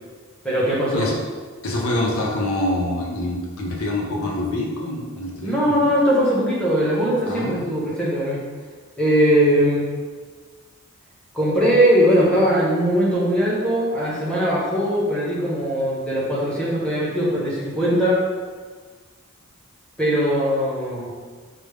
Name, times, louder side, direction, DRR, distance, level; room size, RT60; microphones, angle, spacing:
voice 1, 0.4-1.1 5.4-8.4 9.0-9.8 11.3-18.2 20.0-21.1, equal, 5° left, -8 dB, 0.9 m, -20 dB
voice 2, 1.6-5.9 7.3-7.6, left 1 dB, 80° left, -2 dB, 0.7 m, -25 dB
5.1 x 2.0 x 3.4 m, 1.5 s
head